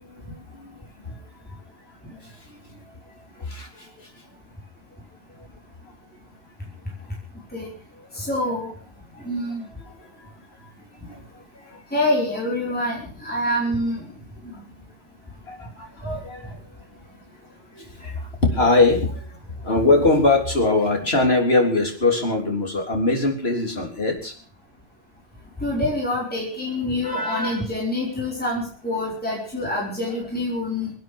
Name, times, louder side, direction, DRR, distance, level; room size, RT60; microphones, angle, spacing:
voice 1, 0.1-0.8 1.0-1.3 2.2-2.8 3.4-4.1 8.1-8.2 9.1-9.3 10.0-10.2 11.0-11.8 15.5-16.6 17.7-24.3 27.0-27.6, left 2 dB, 55° left, 2 dB, 3.9 m, -23 dB
voice 2, 8.1-8.7 9.2-9.7 11.9-14.1 14.5-14.6 25.6-30.9, left 1 dB, 5° left, -3 dB, 4.7 m, -26 dB
24.0 x 9.5 x 6.3 m, 0.43 s
omnidirectional pair, 1.3 m